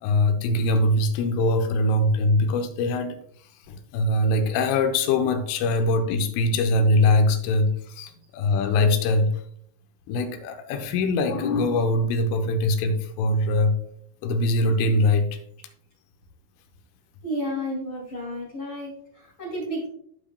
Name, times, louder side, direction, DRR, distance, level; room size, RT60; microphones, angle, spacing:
voice 1, 0.0-3.2 3.7-9.3 10.1-13.8 14.2-15.4, left 2 dB, 85° left, 3.2 m, -22 dB
voice 2, 17.2-19.9, equal, 35° left, 2.2 m, -32 dB
14.5 x 5.1 x 2.2 m
omnidirectional pair, 5.8 m